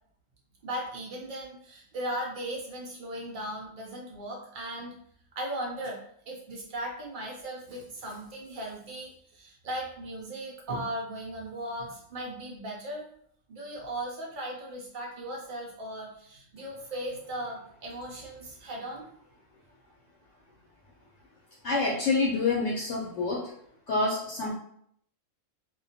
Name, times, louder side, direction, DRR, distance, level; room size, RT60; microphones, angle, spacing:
voice 1, 0.6-4.9 5.4-6.0 6.3-13.0 13.5-19.0, right 1 dB, 75° right, -2 dB, 0.4 m, -37 dB
voice 2, 21.6-23.5 23.9-24.5, left 3 dB, 70° left, -3 dB, 0.8 m, -27 dB
2.3 x 2.2 x 2.7 m, 0.66 s
omnidirectional pair, 1.4 m